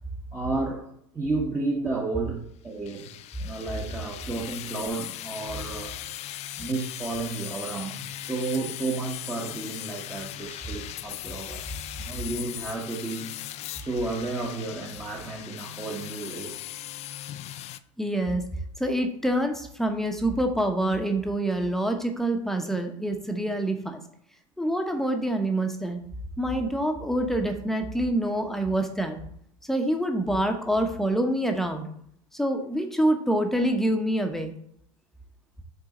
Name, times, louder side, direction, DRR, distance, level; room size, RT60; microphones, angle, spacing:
voice 1, 0.3-6.0 6.6-11.7 12.0-13.3 13.7-16.6, right 3 dB, 15° right, -2 dB, 1.3 m, -32 dB
sound 1, 2.9-17.8, left 13 dB, 40° left, 0.4 m, -39 dB
voice 2, 18.0-18.4 18.8-24.0 24.6-26.0 26.4-29.2 29.7-31.9 32.3-34.5, right 1 dB, ahead, 4 dB, 1.1 m, -26 dB
7.7 x 3.9 x 3.9 m, 0.70 s
hypercardioid pair, 80°, 17 cm